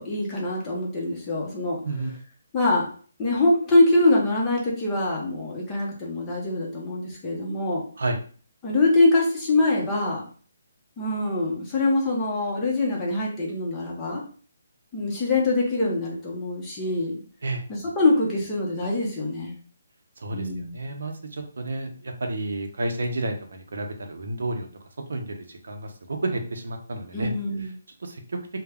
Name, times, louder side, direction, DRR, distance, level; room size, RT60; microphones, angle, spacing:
voice 1, 0.0-1.8 2.5-2.9 3.2-7.8 8.6-10.2 11.0-14.2 14.9-17.2 17.7-19.6 20.3-20.8 27.1-27.7, left 2 dB, 15° left, -4 dB, 0.6 m, -24 dB
voice 2, 20.2-24.7 25.1-27.3 27.6-27.7 28.0-28.4, right 2 dB, 70° right, 4 dB, 0.5 m, -31 dB
2.2 x 2.0 x 3.3 m, 0.42 s
hypercardioid pair, 170°, 0 cm